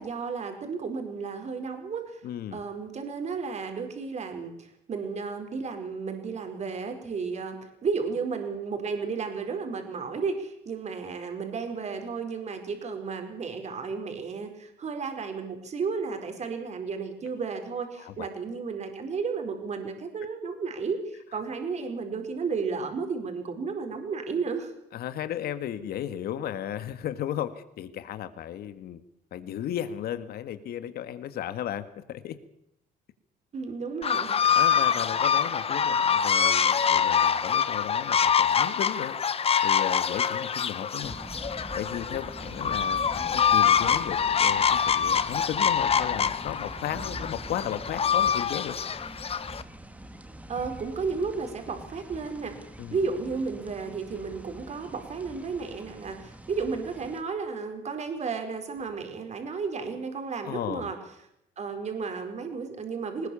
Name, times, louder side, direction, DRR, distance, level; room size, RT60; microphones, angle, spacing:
voice 1, 0.0-2.2 2.5-24.7 33.5-34.4 50.5-52.5 52.9-61.0 61.6-63.3, right 5 dB, 40° right, 5 dB, 4.7 m, -33 dB
voice 2, 2.2-2.6 18.0-18.3 24.9-29.0 29.3-32.4 34.6-39.2 39.6-41.2 41.7-48.8 52.8-53.0 60.4-60.9, left 10 dB, 65° left, 11 dB, 1.9 m, -35 dB
sound 1, 34.0-49.6, left 7 dB, 35° left, 1.3 m, -25 dB
sound 2, 41.0-57.2, right 1 dB, 10° right, 2.6 m, -44 dB
20.5 x 20.0 x 7.2 m, 0.77 s
cardioid pair, 110°, 17 cm